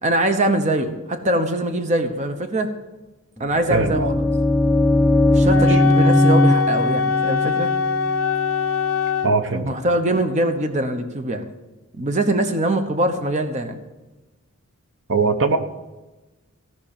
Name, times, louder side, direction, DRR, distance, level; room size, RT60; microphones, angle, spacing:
voice 1, 0.0-2.7 3.4-4.0 5.3-7.7 9.5-11.4 12.0-13.8, right 1 dB, 35° right, 7 dB, 1.0 m, -22 dB
sound 1, 3.4-9.3, left 1 dB, 5° left, 0.5 m, -19 dB
voice 2, 3.7-4.1 5.5-5.8 9.2-9.6 15.1-15.6, right 4 dB, 60° right, 7 dB, 1.1 m, -21 dB
Wind instrument woodwind instrument, 5.5-9.3, left 6 dB, 75° left, 1.0 m, -22 dB
16.0 x 6.1 x 8.8 m, 1.1 s
head